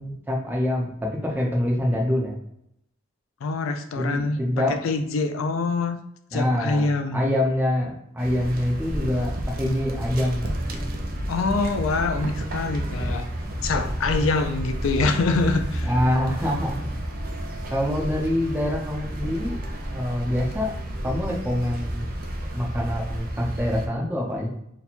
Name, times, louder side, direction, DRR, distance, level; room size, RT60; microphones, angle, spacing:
voice 1, 0.0-2.3 4.0-4.7 6.3-6.9 7.1-10.8 15.8-16.8 17.7-19.6 19.9-20.7 21.0-22.1 22.5-24.5, left 1 dB, 10° right, -2 dB, 0.7 m, -25 dB
voice 2, 3.4-6.0 6.3-7.2 11.3-13.3 13.6-15.9, left 3 dB, 90° left, 7 dB, 0.4 m, -25 dB
sound 1, 8.2-23.9, right 1 dB, 45° right, 0.5 m, -31 dB
2.9 x 2.2 x 4.1 m, 0.75 s
head